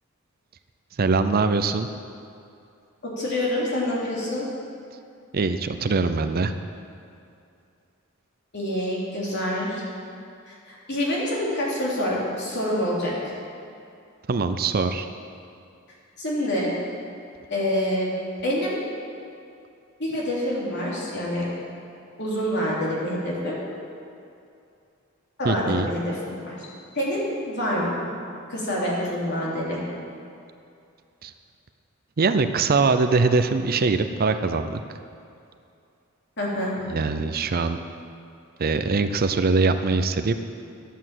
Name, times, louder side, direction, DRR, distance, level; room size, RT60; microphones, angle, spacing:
voice 1, 1.0-1.9 5.3-6.5 14.3-15.1 25.4-25.9 31.2-31.3 32.2-34.8 36.9-37.8 38.6-40.3, right 4 dB, 45° right, 9 dB, 0.5 m, -22 dB
voice 2, 3.0-4.5 8.5-9.8 10.5-13.4 16.2-16.7 17.5-18.1 18.4-18.8 20.0-21.4 22.2-23.6 25.4-26.7 26.9-28.0 28.5-29.8 36.4-36.7, left 1 dB, 55° left, -5 dB, 3.3 m, -26 dB
11.0 x 8.4 x 7.6 m, 2.5 s
head